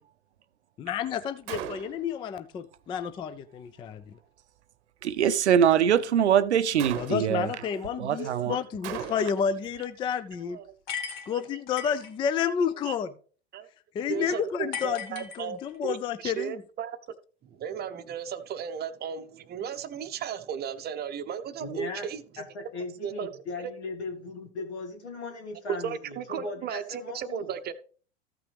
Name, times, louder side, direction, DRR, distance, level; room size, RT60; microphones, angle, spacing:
voice 1, 0.8-4.2 7.0-10.6 11.3-13.1 13.9-16.6, left 7 dB, 15° left, 0.3 m, -30 dB
Gunshot gunfire, 1.5-2.2 6.8-7.5 8.8-9.5, right 11 dB, 60° right, 0.9 m, -37 dB
voice 2, 5.0-7.5 8.0-8.6, right 9 dB, 85° right, 0.6 m, -23 dB
voice 3, 8.2-8.5 9.1-9.2 10.5-10.7 11.3-11.6 12.9-13.0 13.5-13.7 14.1-16.0 16.2-17.0 17.6-22.2 23.0-23.3 23.6-23.7 25.7-27.7, right 8 dB, 30° right, 0.7 m, -35 dB
sound 1, 10.9-12.1 14.7-15.9, left 7 dB, 50° left, 1.8 m, -37 dB
voice 4, 21.6-22.1 22.4-27.5, left 3 dB, 80° left, 2.3 m, -38 dB
14.0 x 5.9 x 3.4 m
hypercardioid pair, 90°, 33 cm